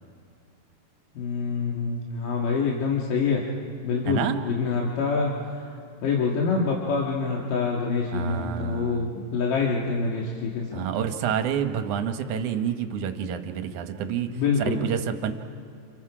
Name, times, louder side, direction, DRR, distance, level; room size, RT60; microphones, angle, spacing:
voice 1, 1.1-3.4 3.8-5.3 5.6-5.8 6.0-10.9 14.3-14.8, left 4 dB, 70° left, -2 dB, 3.3 m, -26 dB
voice 2, 8.1-9.1 10.7-15.3, right 8 dB, 70° right, 7 dB, 2.3 m, -28 dB
30.0 x 28.5 x 4.9 m, 2.3 s
omnidirectional pair, 4.1 m